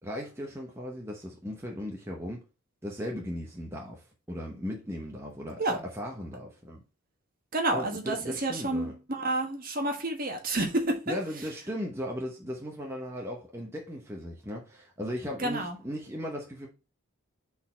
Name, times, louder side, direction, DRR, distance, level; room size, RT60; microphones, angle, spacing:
voice 1, 0.0-2.4 2.8-6.8 7.7-8.9 11.1-16.7, equal, 10° right, 0.9 m, -37 dB
voice 2, 7.5-11.1 15.4-15.8, right 2 dB, 40° right, 1.3 m, -29 dB
4.3 x 4.0 x 5.6 m
head